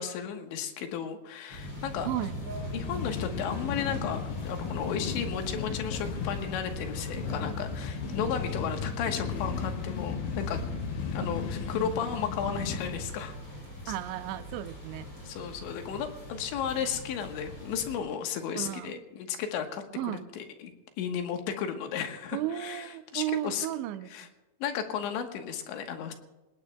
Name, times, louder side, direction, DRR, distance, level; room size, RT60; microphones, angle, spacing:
voice 1, 0.0-2.1 2.7-10.6 11.1-13.4 13.9-14.0 15.3-22.9 23.1-23.7 24.1-24.3 24.6-26.1, left 8 dB, 90° left, 5 dB, 3.6 m, -34 dB
sound 1, 1.5-18.0, equal, 25° left, 6.3 m, -42 dB
voice 2, 2.0-2.4 13.9-15.1 18.5-19.0 20.0-20.3 22.3-24.3, right 13 dB, 85° right, 12 dB, 2.9 m, -34 dB
sound 2, 2.5-13.1, left 6 dB, 70° left, 2.6 m, -35 dB
27.0 x 18.5 x 2.3 m, 1.1 s
omnidirectional pair, 5.1 m